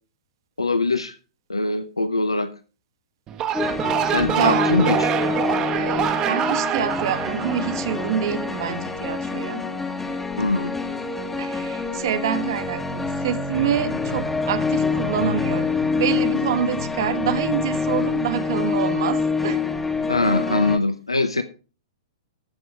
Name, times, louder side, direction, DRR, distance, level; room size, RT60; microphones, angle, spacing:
voice 1, 0.6-1.1 1.5-2.5 4.1-5.1 10.4-10.7 20.1-21.4, left 2 dB, 90° left, 0.8 m, -22 dB
sound 1, 3.3-8.6, right 10 dB, 25° right, 1.1 m, -25 dB
sound 2, 3.5-20.8, left 4 dB, 5° left, 1.2 m, -26 dB
voice 2, 4.0-4.7 5.7-9.6 11.4-19.6, right 9 dB, 55° right, 1.4 m, -26 dB
14.0 x 6.2 x 4.9 m
figure-of-eight pair, 110°, 3 cm